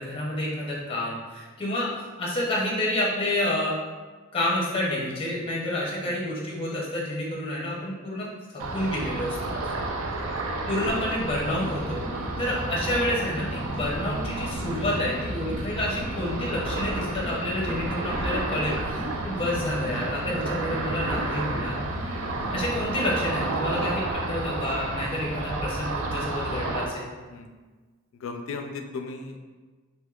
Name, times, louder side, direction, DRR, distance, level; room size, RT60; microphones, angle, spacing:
voice 1, 0.0-1.9 2.2-3.8 4.3-9.5 10.7-12.0 12.4-21.8 22.5-27.1, left 1 dB, 25° left, -4 dB, 0.6 m, -29 dB
Ocean, 8.6-26.8, right 2 dB, 70° right, 0.4 m, -31 dB
sound 1, 11.2-23.2, left 1 dB, 35° right, 1.1 m, -39 dB
voice 2, 22.3-22.7 27.3-27.5 28.1-29.4, left 4 dB, 70° left, 5 dB, 0.3 m, -38 dB
3.4 x 2.8 x 2.3 m, 1.4 s
head